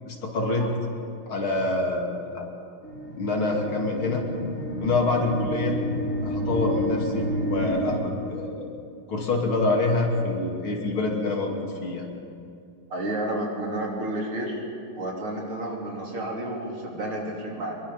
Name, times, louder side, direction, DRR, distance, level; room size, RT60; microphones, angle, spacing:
voice 1, 0.1-0.7 1.3-2.5 3.2-4.2 4.8-5.8 6.2-8.7 9.1-11.5 11.8-12.1, left 2 dB, 70° left, 1 dB, 3.5 m, -26 dB
sound 1, 2.8-8.0, equal, 35° left, 4.9 m, -30 dB
voice 2, 12.9-14.6 15.0-17.7, right 1 dB, 75° right, -1 dB, 4.3 m, -31 dB
25.5 x 22.5 x 5.6 m, 2.4 s
omnidirectional pair, 2.4 m